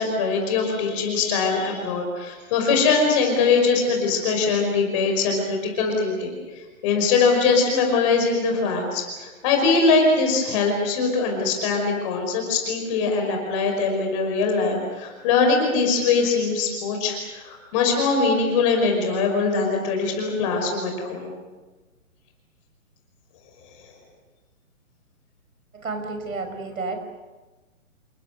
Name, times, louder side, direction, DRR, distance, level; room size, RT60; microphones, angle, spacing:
voice 1, 0.0-6.4 6.8-21.3, left 4 dB, 20° left, 3 dB, 5.5 m, -22 dB
voice 2, 25.7-27.0, right 3 dB, 70° right, 7 dB, 6.0 m, -31 dB
28.5 x 23.5 x 6.6 m, 1.2 s
hypercardioid pair, 170°, 42 cm